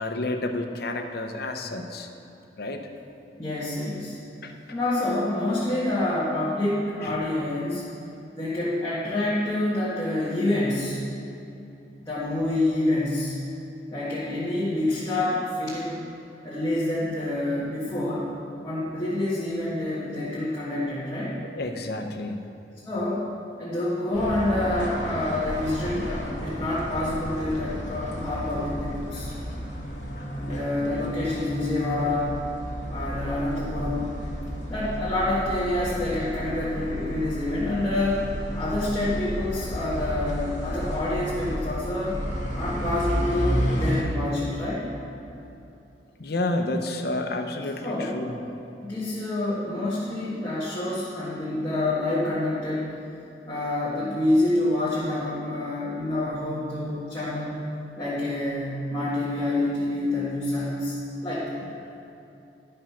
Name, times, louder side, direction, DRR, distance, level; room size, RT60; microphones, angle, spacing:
voice 1, 0.0-2.1 2.6-2.9 4.4-4.5 7.0-7.2 21.4-22.5 30.8-30.9 46.2-48.4, left 2 dB, 60° left, 4 dB, 0.8 m, -30 dB
voice 2, 3.4-4.2 4.7-7.8 8.3-11.0 12.0-13.3 13.9-16.0 16.4-18.3 18.6-21.4 22.9-23.3 23.6-29.3 30.4-32.4 32.9-34.1 34.7-38.2 38.5-42.2 42.5-44.9 47.8-48.2 48.8-52.9 53.5-57.6 58.0-61.0 61.2-61.6, left 1 dB, 20° left, -10 dB, 1.6 m, -27 dB
sound 1, 24.1-44.0, equal, 45° left, 1.7 m, -32 dB
12.0 x 5.4 x 5.7 m, 2.8 s
head